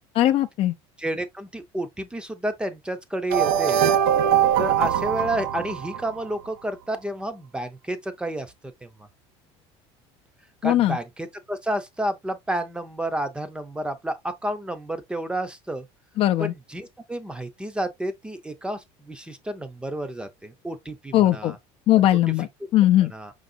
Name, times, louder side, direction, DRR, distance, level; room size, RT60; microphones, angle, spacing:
voice 1, 0.1-0.7 10.6-11.0 16.2-16.5 21.1-21.6 21.9-23.1, left 13 dB, 45° left, 0.5 m, -19 dB
voice 2, 1.0-3.8 4.6-8.5 8.8-9.1 10.6-15.9 16.4-21.6 23.1-23.3, right 1 dB, 5° right, 0.6 m, -30 dB
sound 1, 3.3-6.4, right 9 dB, 80° right, 0.8 m, -22 dB
5.2 x 3.9 x 2.6 m
cardioid pair, 135°, 13 cm